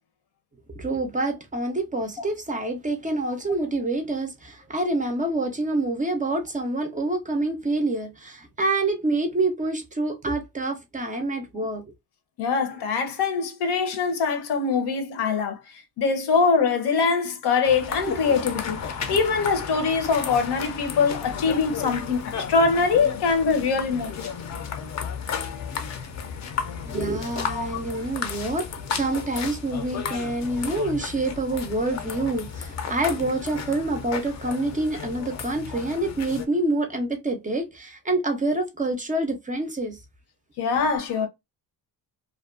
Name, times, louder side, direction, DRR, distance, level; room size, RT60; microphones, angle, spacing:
voice 1, 0.8-11.8 26.9-39.9, right 2 dB, 20° right, 0.4 m, -27 dB
voice 2, 12.4-15.6 16.0-18.8 19.1-24.3 27.5-27.8 40.6-41.3, left 5 dB, 85° left, 0.8 m, -23 dB
sound 1, 17.6-36.5, left 6 dB, 45° left, 0.5 m, -33 dB
2.5 x 2.2 x 2.3 m
cardioid pair, 140°, 39 cm